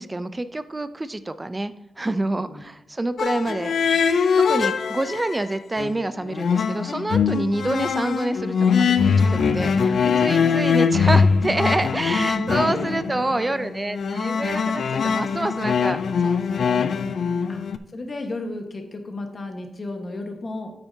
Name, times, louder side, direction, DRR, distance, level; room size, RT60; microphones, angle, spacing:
voice 1, 0.0-3.7 4.4-17.4, right 2 dB, 20° right, 12 dB, 0.4 m, -27 dB
sound 1, 3.2-5.4 5.8-17.8, left 6 dB, 70° left, 0.4 m, -22 dB
voice 2, 9.9-10.6 12.1-13.2 17.5-17.6 17.9-20.7, left 2 dB, 40° left, 4 dB, 1.3 m, -33 dB
9.1 x 8.8 x 2.8 m, 0.85 s
wide cardioid pair, 100°, 0 cm